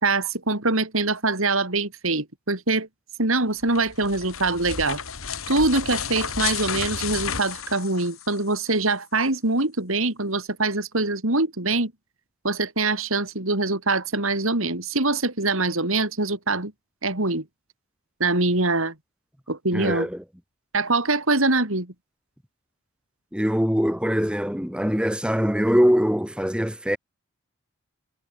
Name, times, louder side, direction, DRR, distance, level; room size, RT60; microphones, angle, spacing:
voice 1, 0.0-2.9 3.2-5.0 5.5-11.9 12.4-16.7 17.0-17.4 18.2-18.9 19.5-20.1 20.7-21.9, right 3 dB, 70° right, 4.0 m, -24 dB
sound 1, 3.6-8.6, left 7 dB, 75° left, 3.6 m, -32 dB
voice 2, 19.7-20.2 23.3-27.0, equal, 5° right, 2.1 m, -22 dB
head